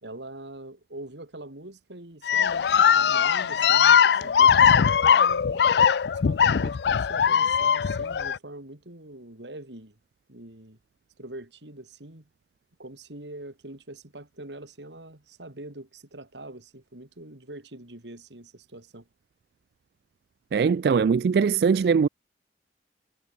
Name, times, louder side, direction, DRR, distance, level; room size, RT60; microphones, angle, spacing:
voice 1, 0.0-5.9 6.2-10.0 10.3-10.8 11.2-12.2 12.8-19.1, right 1 dB, 85° right, 3.5 m, -43 dB
sound 1, 2.3-8.4, left 7 dB, 70° left, 0.4 m, -20 dB
voice 2, 20.5-22.1, right 6 dB, 65° right, 0.3 m, -21 dB
head